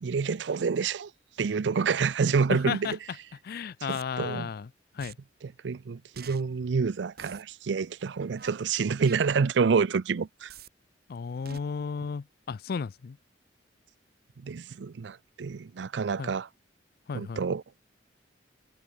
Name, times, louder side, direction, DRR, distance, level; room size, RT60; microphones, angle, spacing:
voice 1, 0.0-1.1 1.4-2.9 3.9-4.5 5.6-10.5 14.4-16.5 17.1-17.6, right 5 dB, 85° right, 0.5 m, -28 dB
voice 2, 2.5-3.0 3.4-4.7 4.9-5.2 11.1-13.2 16.2-16.3 17.1-17.4, left 5 dB, 60° left, 0.4 m, -33 dB
sound 1, 2.8-2.9 3.9-4.0 5.0-5.1 6.1-6.4 7.2-7.4 8.4-8.5 9.0-9.2 10.5-10.7 11.5-11.6, right 6 dB, 60° right, 3.9 m, -45 dB
head